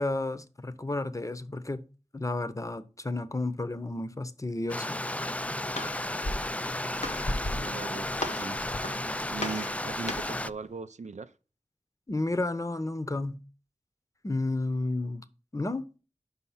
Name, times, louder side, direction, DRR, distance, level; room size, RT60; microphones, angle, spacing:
voice 1, 0.0-1.9 2.1-5.0 12.1-13.4 14.2-15.2 15.5-15.9, left 2 dB, 25° left, 0.7 m, -32 dB
Stream, 4.7-10.5, left 1 dB, 10° left, 0.3 m, -33 dB
Walk footsteps, 5.4-10.5, left 1 dB, 65° left, 1.0 m, -37 dB
voice 2, 7.5-8.6 9.3-11.3, right 4 dB, 70° right, 0.5 m, -39 dB
5.6 x 5.4 x 5.7 m
wide cardioid pair, 40°, 12 cm